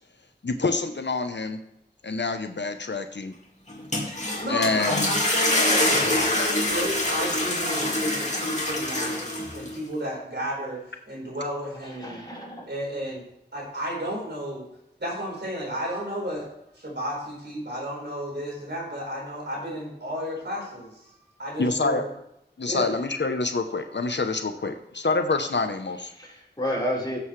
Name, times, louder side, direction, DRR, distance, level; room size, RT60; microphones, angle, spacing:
voice 1, 0.4-1.6 2.0-3.3 4.5-5.1 21.6-22.0 22.6-26.1, left 3 dB, 75° left, 7 dB, 0.8 m, -26 dB
sound 1, 3.7-9.7, left 1 dB, 40° left, 2.2 m, -25 dB
voice 2, 4.4-12.2 12.6-13.2 13.5-14.7 15.0-16.5 16.7-22.1 22.6-22.9, equal, 70° right, -3 dB, 4.8 m, -33 dB
voice 3, 12.0-12.7 26.2-27.2, equal, 25° left, -5 dB, 4.3 m, -30 dB
16.0 x 7.8 x 3.2 m, 0.79 s
wide cardioid pair, 45°, 18 cm